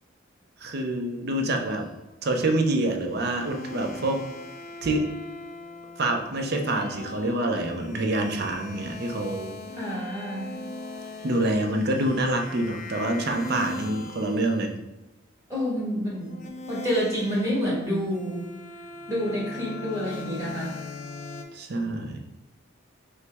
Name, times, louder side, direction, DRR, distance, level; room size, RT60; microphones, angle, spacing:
voice 1, 0.6-1.9 2.2-4.3 4.8-5.1 6.0-9.5 11.2-14.8 21.5-22.2, right 1 dB, 50° right, 3 dB, 0.5 m, -26 dB
sound 1, 1.6-2.2 3.1-14.6 16.3-21.4, left 2 dB, 40° left, 0.4 m, -40 dB
voice 2, 9.7-10.5 15.5-16.4 16.7-18.4 19.1-20.9, equal, 15° right, -6 dB, 1.4 m, -28 dB
5.4 x 2.0 x 3.4 m, 0.95 s
head